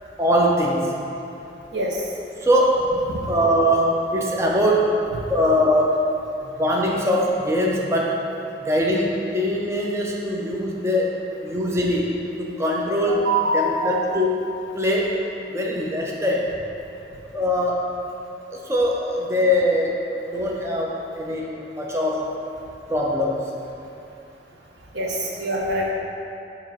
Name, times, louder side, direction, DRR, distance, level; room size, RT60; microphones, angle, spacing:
voice 1, 0.2-0.9 2.4-2.9 3.3-4.9 5.3-6.0 6.6-8.2 8.7-13.3 13.5-14.4 14.8-15.1 15.5-16.6 17.3-17.9 18.5-20.0 20.3-22.3 22.9-23.5, equal, 15° right, -2 dB, 0.5 m, -22 dB
voice 2, 12.9-14.0 24.9-25.9, right 1 dB, 80° right, -2 dB, 1.0 m, -24 dB
7.2 x 2.9 x 5.8 m, 2.8 s
head